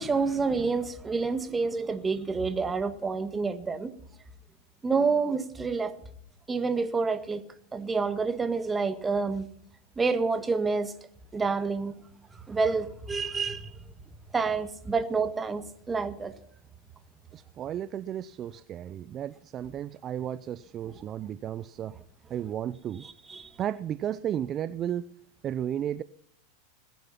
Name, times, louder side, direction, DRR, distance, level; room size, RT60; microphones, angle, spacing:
voice 1, 0.0-3.9 4.8-5.9 6.5-7.4 7.7-9.5 10.0-10.9 11.3-11.9 12.5-13.8 14.3-16.3 23.3-23.5, right 4 dB, 15° right, 1.7 m, -28 dB
voice 2, 17.3-22.0 22.3-23.1 23.6-25.1 25.4-26.0, right 10 dB, 35° right, 0.5 m, -33 dB
21.0 x 9.4 x 5.8 m
hypercardioid pair, 95°, 0 cm